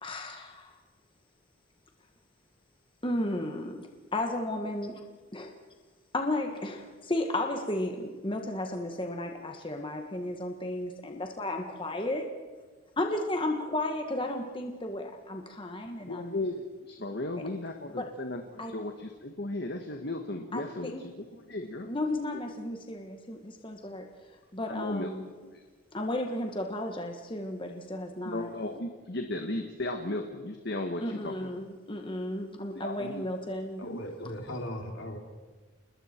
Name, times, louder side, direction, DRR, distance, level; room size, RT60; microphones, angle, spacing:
voice 1, 0.0-0.7 3.0-5.0 5.3-5.5 6.1-12.3 13.0-16.4 18.0-18.1 18.6-18.7 20.5-21.0 21.9-24.1 24.5-25.2 25.9-28.5 31.0-33.9, left 1 dB, 25° left, 4 dB, 1.6 m, -33 dB
voice 2, 16.0-21.9 24.7-25.1 25.4-25.6 28.2-31.5 31.9-32.0 32.7-33.3 33.8-34.3, left 2 dB, 50° left, 4 dB, 1.5 m, -36 dB
voice 3, 33.8-35.2, left 1 dB, 65° left, 3 dB, 3.1 m, -38 dB
29.5 x 20.5 x 4.5 m, 1.4 s
head